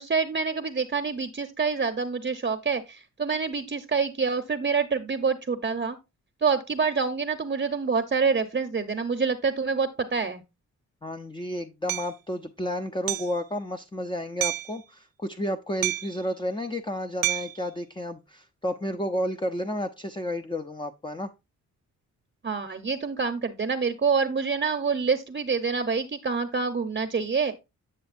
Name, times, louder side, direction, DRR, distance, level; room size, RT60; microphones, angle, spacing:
voice 1, 0.0-6.0 6.4-10.4 22.4-27.5, right 5 dB, 30° right, 0.9 m, -26 dB
voice 2, 11.0-21.3, left 1 dB, 15° left, 0.7 m, -31 dB
Hammer, 11.9-12.1 13.1-13.4 14.4-14.8 15.8-16.2 17.2-17.6, right 16 dB, 70° right, 0.5 m, -29 dB
8.8 x 6.3 x 2.6 m
supercardioid pair, 50°, 37 cm